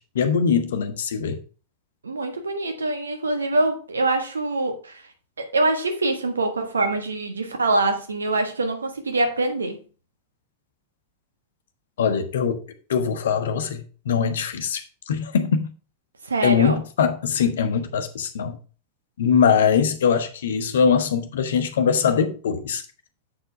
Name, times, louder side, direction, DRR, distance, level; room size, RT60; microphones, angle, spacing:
voice 1, 0.0-1.4 12.0-12.6 12.9-15.7 16.4-18.6 19.2-22.8, left 7 dB, 60° left, 0.9 m, -22 dB
voice 2, 2.0-5.0 5.4-9.8 16.2-16.8, right 2 dB, 75° right, 1.4 m, -24 dB
7.7 x 4.5 x 4.7 m
figure-of-eight pair, 90°, 0 cm